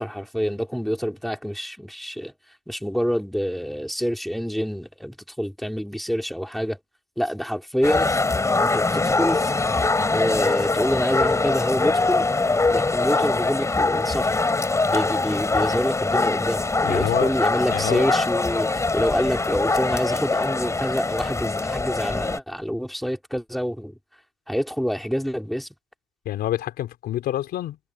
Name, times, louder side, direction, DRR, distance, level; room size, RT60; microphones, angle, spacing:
voice 1, 0.0-2.3 2.7-6.8 7.2-8.2 8.6-9.5 10.1-12.3 12.7-14.4 14.9-24.0 24.5-25.7, equal, ahead, 4.1 m, -27 dB
sound 1, 7.8-22.4, left 3 dB, 15° left, 4.3 m, -23 dB
voice 2, 16.8-17.3 17.7-18.0 26.3-27.8, left 12 dB, 70° left, 3.8 m, -27 dB
cardioid pair, 110°, 17 cm